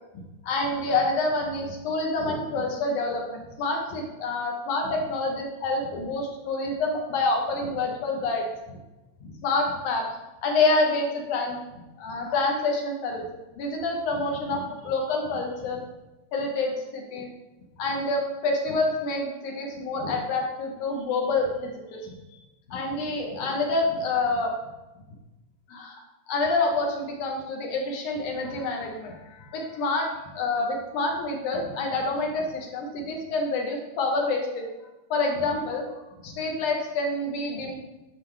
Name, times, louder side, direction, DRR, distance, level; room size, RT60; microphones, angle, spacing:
voice 1, 0.1-8.8 9.2-10.1 10.4-11.6 12.0-13.3 13.6-15.8 16.3-17.3 17.8-22.4 22.7-24.5 25.7-26.0 26.3-34.7 35.1-35.8 36.2-37.8, left 3 dB, 75° left, 1 dB, 2.3 m, -27 dB
9.5 x 6.0 x 3.2 m, 1.1 s
omnidirectional pair, 3.7 m